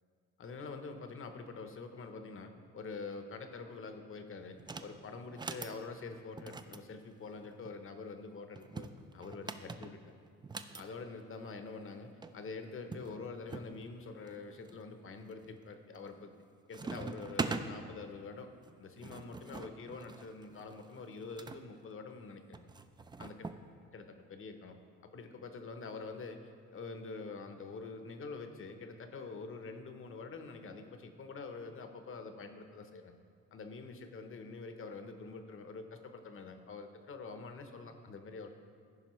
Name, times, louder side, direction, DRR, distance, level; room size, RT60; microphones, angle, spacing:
voice 1, 0.4-8.9 9.1-10.0 10.7-16.3 16.7-18.5 18.8-22.7 23.2-23.5 23.9-24.8 25.1-33.2 33.5-38.5, left 4 dB, 45° left, 7 dB, 0.8 m, -46 dB
sound 1, 4.6-4.9 5.3-5.8 6.4-7.8 8.6-10.8 11.9-12.0 12.2-12.3 12.9-13.7 14.3-14.8 15.3-15.7 16.0-16.4 16.7-17.7 18.6-21.6 22.5-23.6, right 4 dB, 15° right, 0.3 m, -42 dB
14.5 x 5.1 x 3.1 m, 2.2 s
cardioid pair, 90°, 30 cm